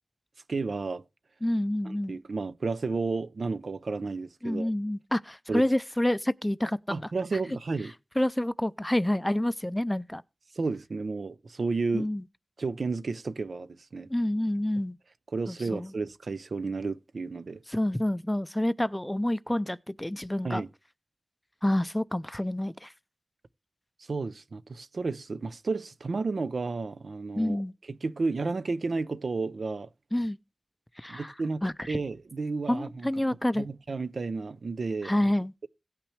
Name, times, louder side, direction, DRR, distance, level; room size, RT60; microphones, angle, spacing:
voice 1, 0.5-1.0 1.8-4.7 5.5-5.6 6.9-7.9 10.6-12.1 12.6-14.1 15.3-17.6 20.4-20.7 24.1-27.6 27.9-29.9 31.1-33.1 33.6-35.1, right 3 dB, 80° right, 0.5 m, -32 dB
voice 2, 1.4-2.2 4.4-7.0 8.2-10.2 11.9-12.2 14.1-15.0 15.5-15.9 17.7-20.6 21.6-22.9 27.4-27.7 30.1-30.4 31.0-31.3 31.6-32.0 32.7-33.7 35.0-35.5, left 1 dB, 10° left, 0.4 m, -28 dB
17.5 x 5.9 x 3.2 m
wide cardioid pair, 65°, 0 cm